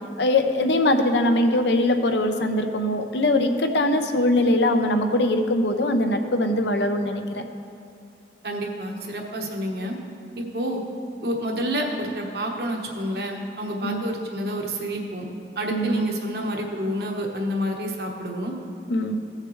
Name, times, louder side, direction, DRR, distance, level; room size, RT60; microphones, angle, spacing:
voice 1, 0.2-7.4 13.8-14.0 15.7-16.1 18.9-19.2, left 1 dB, 80° left, 6 dB, 0.7 m, -22 dB
voice 2, 8.4-10.0 10.4-10.8 11.2-15.2 15.6-18.5, equal, 65° right, 1 dB, 1.2 m, -29 dB
15.5 x 6.6 x 3.2 m, 2.4 s
head